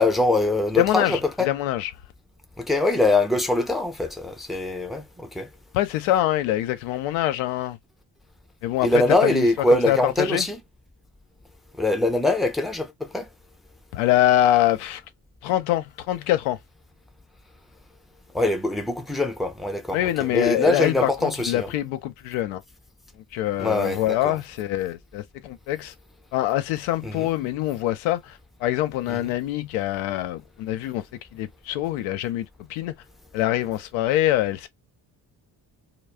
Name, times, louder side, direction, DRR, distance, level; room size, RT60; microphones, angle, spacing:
voice 1, 0.0-1.5 2.6-5.5 8.8-10.6 11.8-13.3 18.3-21.7 23.6-24.4 27.0-27.3 29.1-29.3, left 2 dB, ahead, 0.6 m, -23 dB
voice 2, 0.8-1.9 5.7-7.8 8.6-8.9 9.2-10.4 13.9-15.0 15.4-16.6 19.9-22.6 23.3-25.9 26.3-31.0 31.3-32.9 33.3-34.7, left 13 dB, 75° left, 0.6 m, -24 dB
2.3 x 2.0 x 3.3 m
hypercardioid pair, 45°, 49 cm